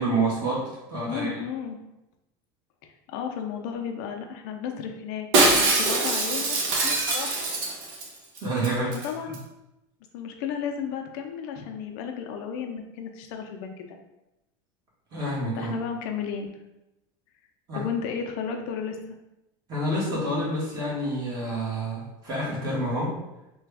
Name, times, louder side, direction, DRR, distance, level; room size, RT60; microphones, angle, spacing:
voice 1, 0.0-1.3 8.4-9.1 15.1-15.7 17.7-17.8 19.7-23.1, right 1 dB, 35° right, -5 dB, 1.4 m, -28 dB
voice 2, 1.1-1.8 3.1-6.6 6.8-7.3 9.0-9.4 10.1-14.0 15.6-16.5 17.7-19.1, left 7 dB, 65° left, 4 dB, 0.4 m, -33 dB
Shatter, 5.3-8.1 8.4-8.5 8.6-9.1 9.3-9.4, right 2 dB, 60° right, 0.8 m, -23 dB
3.3 x 2.3 x 3.3 m, 0.91 s
supercardioid pair, 145°, 12 cm